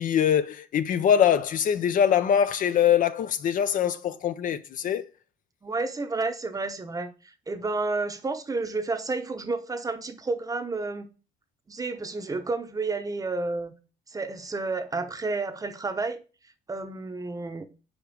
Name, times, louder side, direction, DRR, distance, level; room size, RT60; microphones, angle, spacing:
voice 1, 0.0-5.1, left 9 dB, 55° left, 0.6 m, -23 dB
voice 2, 5.6-7.1 7.5-11.1 11.7-13.7 14.1-16.2 16.7-17.6, right 3 dB, 20° right, 0.8 m, -30 dB
5.1 x 4.7 x 6.1 m
cardioid pair, 110°, 17 cm